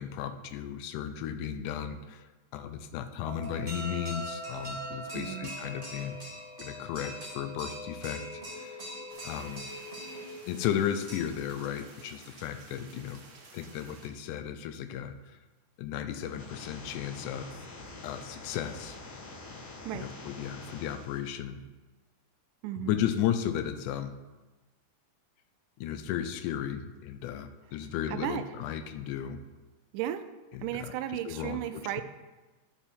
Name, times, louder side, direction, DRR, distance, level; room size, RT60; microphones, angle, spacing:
voice 1, 0.0-2.3 2.5-6.2 6.6-8.2 8.5-8.9 9.2-9.7 10.5-13.2 13.5-15.4 15.8-17.5 18.0-19.0 19.9-21.6 22.8-24.1 25.8-29.4 30.5-30.9 31.3-32.0, left 9 dB, 80° left, 9 dB, 2.0 m, -34 dB
sound 1, 3.2-11.2, equal, 20° right, 1.7 m, -41 dB
voice 2, 5.1-5.5 19.9-20.1 22.6-23.0 28.1-28.5 29.9-30.3 30.6-32.0, right 12 dB, 85° right, 11 dB, 2.1 m, -34 dB
sound 2, 9.1-14.1, right 3 dB, 55° right, 1.6 m, -53 dB
sound 3, 16.2-21.2, left 3 dB, 50° left, 1.9 m, -46 dB
12.0 x 5.4 x 4.4 m, 1.2 s
omnidirectional pair, 3.6 m